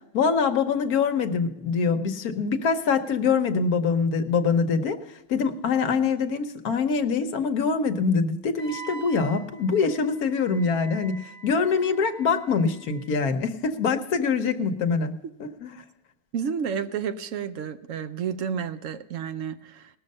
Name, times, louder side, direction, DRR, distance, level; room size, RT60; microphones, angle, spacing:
voice 1, 0.1-5.0 5.3-15.1 15.4-15.7, left 5 dB, 70° left, 6 dB, 1.4 m, -24 dB
Wind instrument woodwind instrument, 8.6-13.2, right 4 dB, 45° left, 1.5 m, -45 dB
voice 2, 16.3-19.9, right 7 dB, 65° right, 10 dB, 1.0 m, -31 dB
19.0 x 6.5 x 5.4 m, 0.86 s
omnidirectional pair, 1.6 m